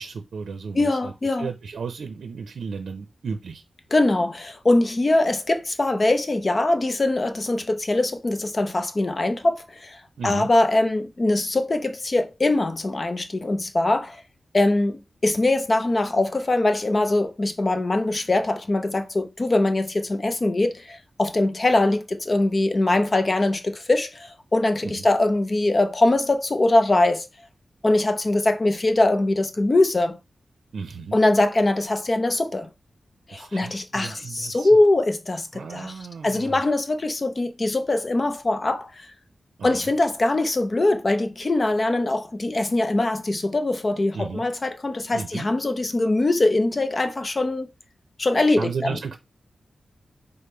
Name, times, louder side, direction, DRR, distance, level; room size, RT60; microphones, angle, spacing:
voice 1, 0.0-1.1 1.4-3.6 10.2-10.5 24.8-25.1 30.7-31.2 33.3-34.7 35.5-36.6 39.6-39.9 44.1-44.4 45.1-45.5 48.6-49.2, right 5 dB, 80° right, 0.6 m, -34 dB
voice 2, 0.7-1.5 3.9-14.2 14.5-27.3 27.8-30.2 31.1-32.7 33.3-35.9 36.2-39.1 39.6-47.7 48.2-49.0, left 2 dB, 30° left, 0.6 m, -22 dB
5.2 x 2.0 x 4.3 m
wide cardioid pair, 160°, 0 cm